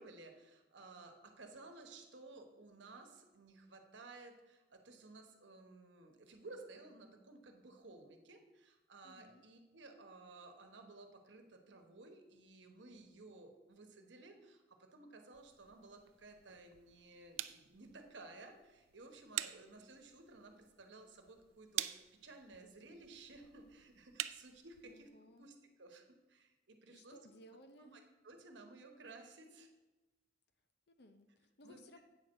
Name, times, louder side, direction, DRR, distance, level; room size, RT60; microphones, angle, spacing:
voice 1, 0.0-25.1 25.4-27.2 27.8-29.7 31.6-32.0, right 2 dB, 70° right, 5 dB, 1.1 m, -56 dB
voice 2, 9.0-9.4 24.8-25.5 26.9-28.0 30.9-32.0, left 1 dB, 60° left, 8 dB, 0.7 m, -60 dB
sound 1, 15.3-25.1, right 13 dB, 90° right, 0.4 m, -48 dB
8.5 x 4.5 x 6.3 m, 1.1 s
head